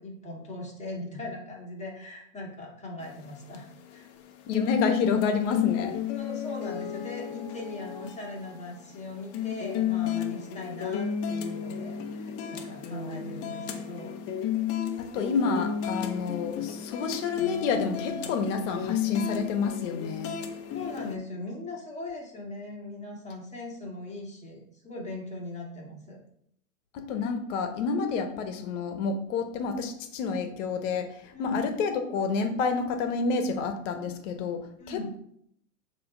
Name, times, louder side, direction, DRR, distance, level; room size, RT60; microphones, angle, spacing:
voice 1, 0.0-4.1 6.2-14.1 20.7-26.2 31.3-31.6 34.8-35.2, left 2 dB, 15° left, -2 dB, 1.8 m, -40 dB
sound 1, 3.0-21.2, left 9 dB, 35° left, 0.8 m, -33 dB
voice 2, 4.5-6.0 15.0-20.4 26.9-35.2, left 5 dB, 55° left, 7 dB, 1.2 m, -29 dB
6.9 x 3.0 x 5.3 m, 0.70 s
hypercardioid pair, 110°, 43 cm